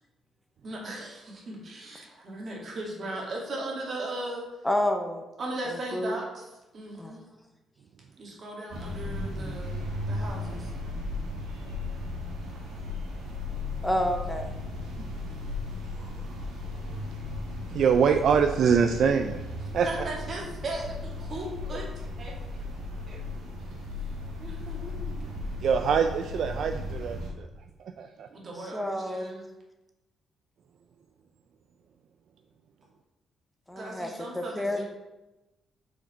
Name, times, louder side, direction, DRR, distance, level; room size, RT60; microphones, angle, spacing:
voice 1, 0.6-4.5 5.4-6.5 6.7-7.2 8.2-10.7 19.6-22.4 23.1-23.2 24.4-25.2 28.3-29.5 33.8-34.8, right 2 dB, 50° right, -2 dB, 1.9 m, -37 dB
voice 2, 4.6-5.2 5.9-6.2 7.0-7.2 13.8-14.5 28.7-29.3 33.7-34.8, left 1 dB, 5° left, 4 dB, 0.6 m, -29 dB
sound 1, 8.7-27.3, left 2 dB, 80° right, 1.5 m, -36 dB
voice 3, 17.7-19.4 19.7-19.9 25.6-27.5 28.0-28.3, right 6 dB, 65° right, 6 dB, 0.3 m, -24 dB
5.0 x 3.9 x 5.4 m, 1.0 s
cardioid pair, 90°, 0 cm